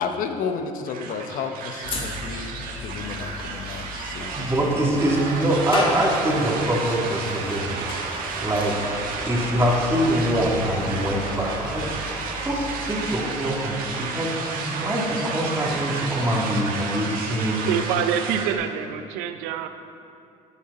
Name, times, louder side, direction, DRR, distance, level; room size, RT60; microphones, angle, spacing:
voice 1, 0.0-5.0, left 6 dB, 65° left, 7 dB, 1.0 m, -32 dB
sound 1, 0.8-18.5, right 4 dB, 70° right, 1.5 m, -32 dB
sound 2, 1.8-15.1, left 2 dB, 35° left, 2.4 m, -36 dB
voice 2, 4.3-7.8 8.1-8.9 9.3-12.1 12.4-17.7, right 1 dB, 15° right, -4 dB, 3.0 m, -24 dB
voice 3, 17.7-19.7, right 8 dB, 85° right, 8 dB, 0.7 m, -26 dB
13.0 x 8.5 x 4.3 m, 2.5 s
supercardioid pair, 80°, 15 cm